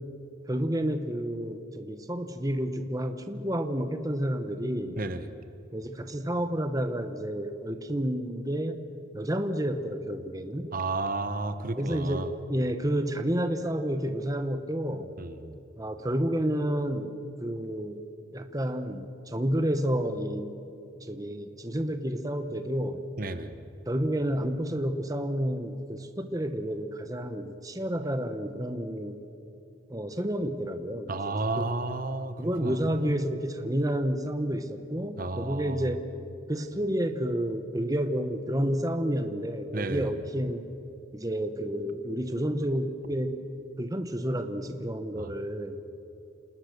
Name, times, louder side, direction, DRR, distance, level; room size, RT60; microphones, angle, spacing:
voice 1, 0.5-5.0 5.7-8.8 9.1-10.7 11.8-15.1 15.8-17.1 17.4-18.0 18.3-20.5 21.0-23.0 23.9-29.2 29.9-31.7 32.4-36.0 36.5-40.7 41.1-43.4 43.8-45.8, equal, 20° right, 8 dB, 1.0 m, -30 dB
voice 2, 5.0-5.3 10.7-12.3 15.2-15.5 23.2-23.5 31.1-33.2 35.2-35.9 39.7-40.1 45.2-45.3, right 2 dB, 45° right, 10 dB, 0.9 m, -32 dB
27.5 x 19.5 x 6.7 m, 2.9 s
head